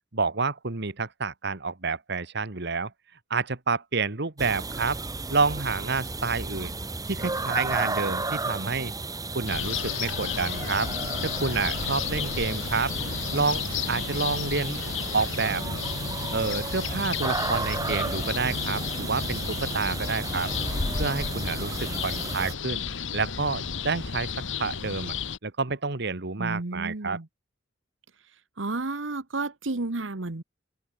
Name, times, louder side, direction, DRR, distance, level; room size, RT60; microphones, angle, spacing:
voice 1, 0.1-2.9 3.3-5.0 5.3-6.7 7.1-8.9 9.3-10.9 11.2-12.9 13.3-13.6 13.9-14.8 15.1-15.6 16.3-20.5 20.9-22.9 23.1-24.3 24.6-25.1 25.4-27.2, right 4 dB, 60° right, 1.7 m, -29 dB
sound 1, 4.4-22.5, right 3 dB, 20° right, 1.3 m, -33 dB
sound 2, 9.5-25.4, left 6 dB, 85° left, 1.3 m, -32 dB
voice 2, 26.4-27.3 28.6-30.4, right 2 dB, 85° right, 1.3 m, -31 dB
open air
head